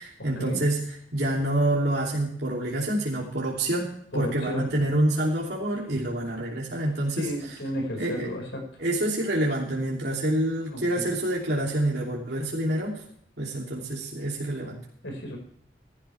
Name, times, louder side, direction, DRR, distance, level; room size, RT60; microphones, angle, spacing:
voice 1, 0.0-7.3 8.0-8.3 8.8-13.0 13.4-14.8, right 1 dB, 60° right, -4 dB, 3.1 m, -27 dB
voice 2, 4.1-4.7 7.2-8.6 10.6-11.1 15.0-15.4, left 1 dB, 80° left, 2 dB, 5.4 m, -33 dB
16.5 x 12.5 x 3.5 m, 0.64 s
head